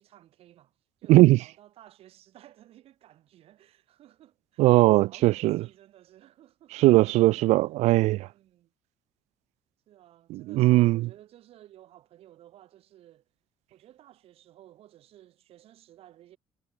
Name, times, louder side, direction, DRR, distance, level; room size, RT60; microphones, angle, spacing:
voice 1, 0.0-4.6 5.0-6.9 7.4-7.5 8.3-8.7 9.9-13.3 13.7-16.4, right 13 dB, 60° right, 4.1 m, -54 dB
voice 2, 4.6-5.6 6.7-8.3 10.3-11.0, right 18 dB, 90° right, 0.4 m, -19 dB
cardioid pair, 175°, 11 cm